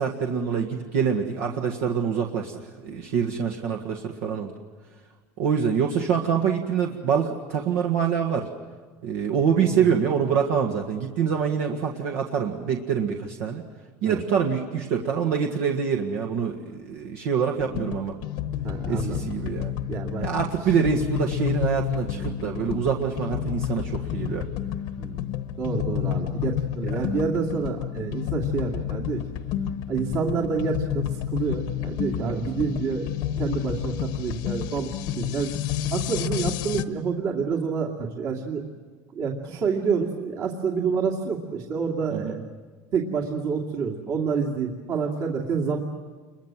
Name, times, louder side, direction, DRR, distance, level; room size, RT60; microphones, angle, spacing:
voice 1, 0.0-4.5 5.4-8.5 9.0-13.6 14.0-18.1 18.9-19.7 20.2-24.5 26.8-27.1 32.2-32.4 42.1-42.4, right 7 dB, 75° right, 2 dB, 1.8 m, -25 dB
voice 2, 9.6-9.9 14.1-14.2 18.6-19.2 19.9-20.3 25.0-25.3 25.6-29.2 29.9-33.1 33.4-35.5 35.9-38.6 39.1-42.4 42.9-45.8, right 5 dB, 50° right, -2 dB, 2.5 m, -28 dB
sound 1, 17.6-36.8, left 11 dB, 65° left, 1.1 m, -30 dB
28.5 x 23.0 x 7.5 m, 1.4 s
cardioid pair, 140°, 8 cm